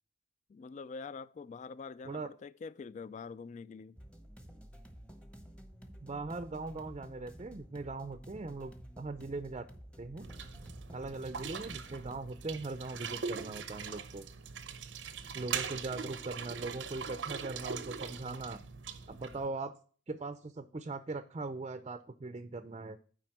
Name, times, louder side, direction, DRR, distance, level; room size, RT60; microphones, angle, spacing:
voice 1, 0.5-4.0, left 5 dB, 40° left, 0.3 m, -45 dB
sound 1, 4.0-12.2, equal, 5° left, 0.9 m, -52 dB
voice 2, 6.0-9.7 10.0-10.3 10.9-14.2 15.3-18.6 19.1-19.8 20.1-23.0, right 3 dB, 35° right, 0.5 m, -40 dB
sound 2, 10.2-19.5, right 6 dB, 90° right, 0.7 m, -41 dB
7.8 x 4.9 x 5.9 m
head